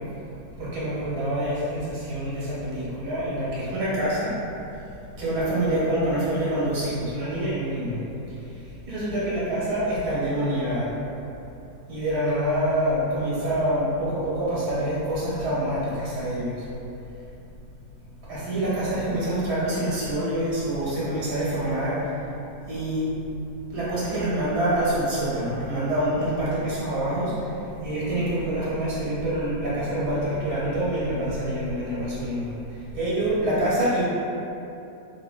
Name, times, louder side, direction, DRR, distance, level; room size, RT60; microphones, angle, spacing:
voice 1, 0.6-4.3 5.2-8.0 8.9-10.9 11.9-16.6 18.3-22.1 22.7-23.0 23.7-27.5 27.8-32.5 32.9-34.0, right 1 dB, 75° right, -9 dB, 1.3 m, -26 dB
2.8 x 2.8 x 2.3 m, 2.8 s
omnidirectional pair, 1.7 m